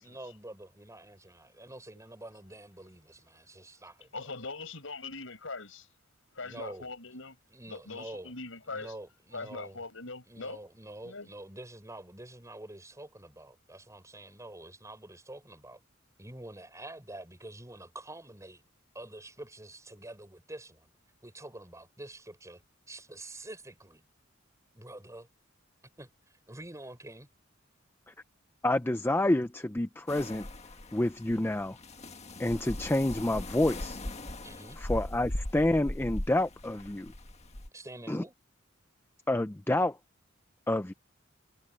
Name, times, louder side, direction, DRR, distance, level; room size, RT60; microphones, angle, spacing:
voice 1, 0.0-4.3 6.4-6.9 7.5-8.3 8.7-9.8 10.3-15.8 16.2-18.6 18.9-20.9 21.2-22.6 22.9-24.0 24.7-25.3 26.0-26.1 26.5-27.3 34.4-34.8 37.7-38.3, right 1 dB, 15° right, 6.0 m, -47 dB
voice 2, 4.1-5.9 6.4-7.3 7.7-8.9 9.3-10.6 11.0-11.3, left 3 dB, 80° left, 6.3 m, -41 dB
voice 3, 28.6-30.5 30.9-31.8 32.4-34.0 34.8-37.1 38.1-38.2 39.3-40.0 40.7-40.9, left 1 dB, 10° left, 0.5 m, -28 dB
sound 1, 30.1-37.7, left 1 dB, 35° left, 1.6 m, -39 dB
head